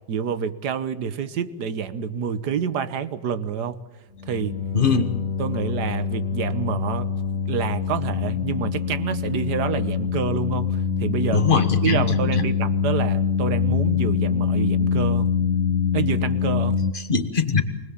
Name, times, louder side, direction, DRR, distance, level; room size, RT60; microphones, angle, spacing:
voice 1, 0.1-3.8 4.3-4.6 5.4-7.1 7.5-11.5 11.8-15.3 15.9-16.8, right 7 dB, 65° right, 12 dB, 1.5 m, -28 dB
sound 1, 4.2-16.9, left 6 dB, 55° left, 1.1 m, -24 dB
voice 2, 4.7-5.1 11.3-12.4 16.9-17.6, left 5 dB, 30° left, 9 dB, 1.4 m, -22 dB
25.0 x 19.5 x 7.3 m, 1.1 s
omnidirectional pair, 2.0 m